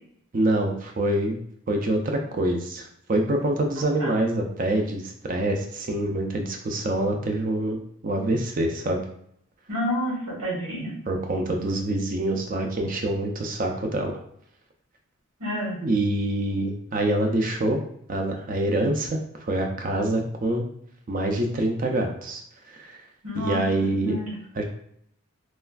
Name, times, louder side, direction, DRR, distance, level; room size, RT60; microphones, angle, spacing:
voice 1, 0.3-1.4 1.7-9.0 11.1-14.2 15.8-17.8 18.1-19.2 19.5-20.7 21.1-22.4 22.7-23.0 23.3-24.2 24.5-24.6, right 1 dB, 35° right, 3 dB, 0.4 m, -25 dB
voice 2, 9.7-10.9 15.4-15.8 23.2-23.6 24.0-24.3, equal, 85° right, -5 dB, 1.2 m, -29 dB
3.2 x 2.3 x 2.3 m, 0.68 s
head